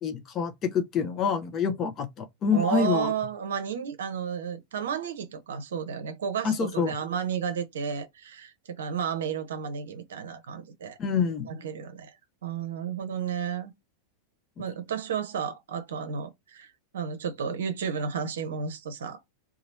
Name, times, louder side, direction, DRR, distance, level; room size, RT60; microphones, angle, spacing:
voice 1, 0.0-3.1 6.4-6.9 11.0-11.5, left 6 dB, 30° left, 0.7 m, -27 dB
voice 2, 2.5-11.0 11.5-12.2 12.4-13.7 14.6-19.2, right 7 dB, 60° right, 0.7 m, -32 dB
2.9 x 2.3 x 4.2 m
figure-of-eight pair, 90°, 0 cm